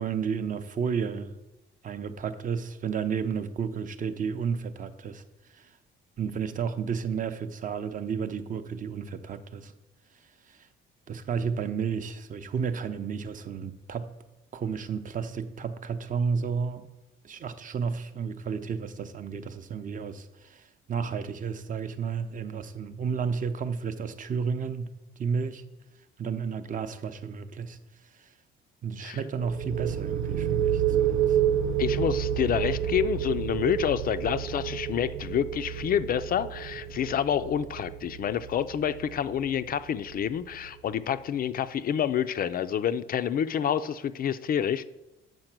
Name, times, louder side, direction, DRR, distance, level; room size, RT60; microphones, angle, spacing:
voice 1, 0.0-1.4 1.8-5.2 5.5-5.7 6.2-9.7 10.5-10.7 11.1-14.1 14.5-16.9 17.2-24.9 25.2-25.6 26.2-27.8 28.1-28.3 28.8-31.4, right 6 dB, 40° right, 10 dB, 0.6 m, -32 dB
sound 1, 29.4-40.9, right 9 dB, 85° right, 0.6 m, -30 dB
voice 2, 31.8-44.8, left 9 dB, 45° left, 12 dB, 0.4 m, -28 dB
7.8 x 4.8 x 6.0 m, 0.98 s
cardioid pair, 115°, 21 cm